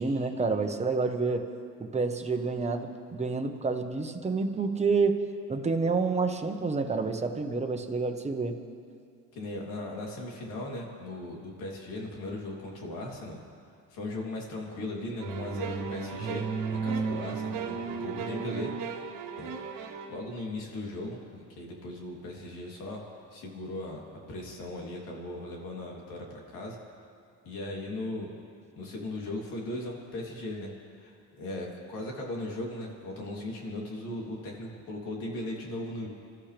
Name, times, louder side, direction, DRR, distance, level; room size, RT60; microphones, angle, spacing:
voice 1, 0.0-1.5 1.8-8.6, right 4 dB, 20° right, 4 dB, 1.3 m, -29 dB
voice 2, 9.3-13.4 13.9-16.4 16.7-18.7 19.4-19.5 20.1-23.0 23.3-24.0 24.3-26.8 27.4-28.3 28.7-36.1, left 2 dB, 90° left, -2 dB, 3.3 m, -38 dB
sound 1, 15.2-20.2, right 5 dB, 75° right, 1.5 m, -34 dB
27.0 x 13.5 x 3.5 m, 2.3 s
cardioid pair, 110°, 32 cm